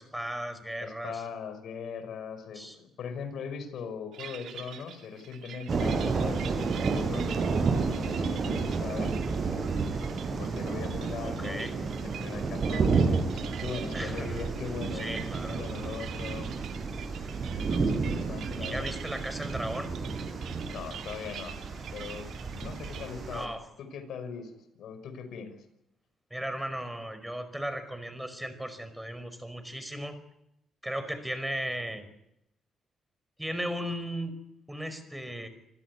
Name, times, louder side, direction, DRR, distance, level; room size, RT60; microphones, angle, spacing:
voice 1, 0.0-1.2 2.5-2.8 11.2-11.7 13.9-14.4 14.9-15.6 18.6-19.9 23.3-23.7 26.3-30.2 30.8-32.1 33.4-34.3 34.7-35.5, equal, 5° right, 11 dB, 5.0 m, -36 dB
voice 2, 0.8-9.1 10.4-16.5 17.5-18.9 20.7-21.6 21.9-23.5 23.8-25.6, left 6 dB, 70° left, 9 dB, 5.5 m, -40 dB
sound 1, 4.1-23.1, right 9 dB, 75° right, 2.5 m, -46 dB
sound 2, 5.7-23.5, right 4 dB, 45° right, 6.6 m, -31 dB
27.0 x 16.0 x 9.7 m, 0.82 s
cardioid pair, 95°, 0 cm